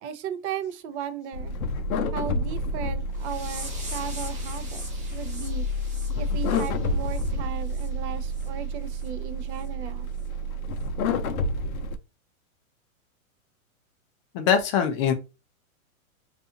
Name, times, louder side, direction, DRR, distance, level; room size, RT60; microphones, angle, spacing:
voice 1, 0.0-1.5 2.1-5.7 6.2-10.1, right 8 dB, 55° right, 0.5 m, -36 dB
sound 1, 1.3-12.0, left 1 dB, 75° left, 0.6 m, -29 dB
sound 2, 3.2-7.9 8.3-8.5 8.9-9.1 9.5-9.7 10.2-10.3, right 2 dB, 15° right, 1.0 m, -43 dB
voice 2, 14.3-15.1, left 8 dB, 25° left, 0.3 m, -23 dB
2.5 x 2.4 x 2.6 m
hypercardioid pair, 130°, 43 cm